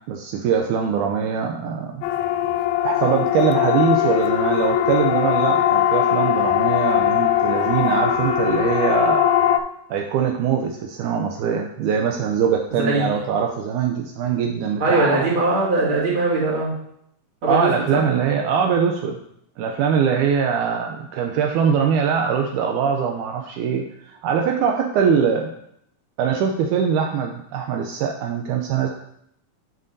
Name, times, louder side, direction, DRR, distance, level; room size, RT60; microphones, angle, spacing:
voice 1, 0.1-2.0 2.8-9.3 9.9-15.3 17.5-19.2 19.6-25.5 26.2-28.9, right 7 dB, 80° right, 3 dB, 2.0 m, -22 dB
Siren, 2.0-9.6, left 10 dB, 80° left, 1.6 m, -20 dB
voice 2, 12.7-13.1 14.8-16.7 17.4-18.0, right 2 dB, 45° right, -6 dB, 2.8 m, -21 dB
8.8 x 6.5 x 2.6 m, 0.73 s
omnidirectional pair, 3.6 m